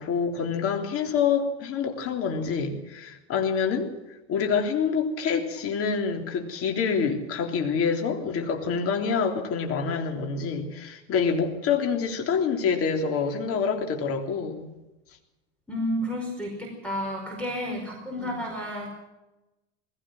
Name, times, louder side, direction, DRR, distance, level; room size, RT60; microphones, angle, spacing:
voice 1, 0.0-14.7 18.2-18.4, left 6 dB, 45° left, 4 dB, 3.5 m, -27 dB
voice 2, 15.7-18.9, equal, 5° left, 1 dB, 5.0 m, -31 dB
20.5 x 16.5 x 7.8 m, 1.0 s
supercardioid pair, 135°, 33 cm